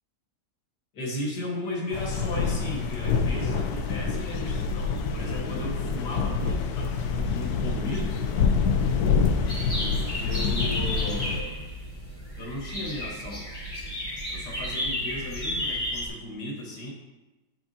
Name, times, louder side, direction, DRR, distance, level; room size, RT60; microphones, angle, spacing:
voice 1, 0.9-8.2 10.2-11.7 12.4-13.5 14.3-16.9, left 1 dB, 90° left, -2 dB, 2.1 m, -35 dB
sound 1, 1.9-11.4, left 5 dB, 75° left, 1.1 m, -26 dB
sound 2, 9.5-16.1, left 1 dB, 15° left, 1.0 m, -33 dB
9.7 x 4.5 x 2.8 m, 1.1 s
omnidirectional pair, 1.8 m